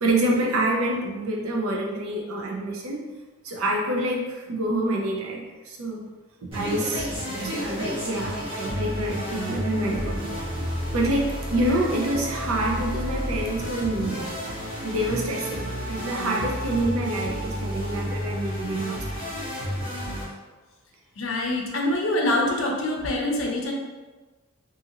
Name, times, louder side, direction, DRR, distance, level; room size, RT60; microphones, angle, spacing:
voice 1, 0.0-3.0 3.4-6.0 6.5-7.1 7.4-10.3 10.9-14.4 14.8-19.0, right 1 dB, 85° right, -1 dB, 0.6 m, -27 dB
sound 1, 6.5-20.2, equal, 25° right, 0.9 m, -31 dB
voice 2, 21.2-23.7, left 1 dB, 70° left, 0 dB, 0.5 m, -25 dB
2.7 x 2.5 x 2.8 m, 1.2 s
head